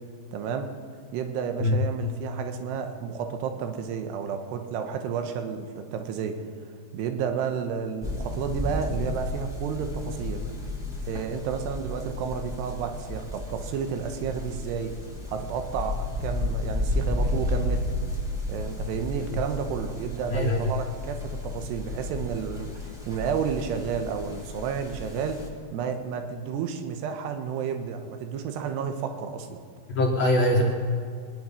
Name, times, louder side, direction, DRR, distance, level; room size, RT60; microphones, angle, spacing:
voice 1, 0.3-0.7 1.1-6.4 6.9-10.4 11.1-15.0 15.3-18.0 18.5-25.4 25.7-29.6, right 6 dB, 80° right, 6 dB, 3.2 m, -31 dB
sound 1, 8.0-25.5, left 1 dB, ahead, 0.8 m, -32 dB
voice 2, 20.3-20.7 29.9-30.7, left 1 dB, 60° left, -2 dB, 1.7 m, -22 dB
24.0 x 10.5 x 5.5 m, 2.3 s
omnidirectional pair, 5.0 m